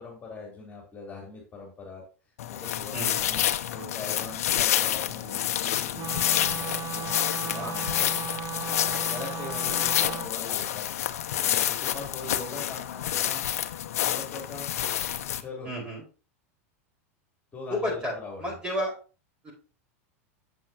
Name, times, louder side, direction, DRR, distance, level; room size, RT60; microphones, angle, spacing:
voice 1, 0.0-2.0 2.5-3.4 3.7-7.2 7.4-8.1 9.0-10.9 11.4-13.5 14.0-14.7 15.3-15.7 17.5-18.6, left 3 dB, 20° left, -2 dB, 3.6 m, -41 dB
sound 1, 2.4-15.4, left 12 dB, 85° left, 0.8 m, -28 dB
Wind instrument woodwind instrument, 5.9-10.3, right 9 dB, 35° right, 0.8 m, -37 dB
voice 2, 7.3-7.7 15.6-16.0 17.7-18.1 18.4-18.9 19.4-19.5, equal, 15° right, -1 dB, 4.9 m, -31 dB
8.2 x 7.6 x 2.9 m, 0.34 s
supercardioid pair, 130°, 8 cm